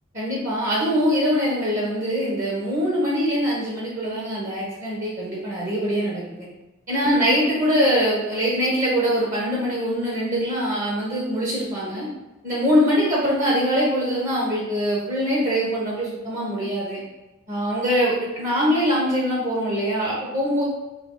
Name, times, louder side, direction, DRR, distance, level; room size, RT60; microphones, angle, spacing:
voice 1, 0.1-6.2 6.9-12.1 12.4-17.0 17.5-20.6, equal, 35° right, -6 dB, 1.0 m, -23 dB
3.4 x 3.0 x 3.9 m, 1.0 s
head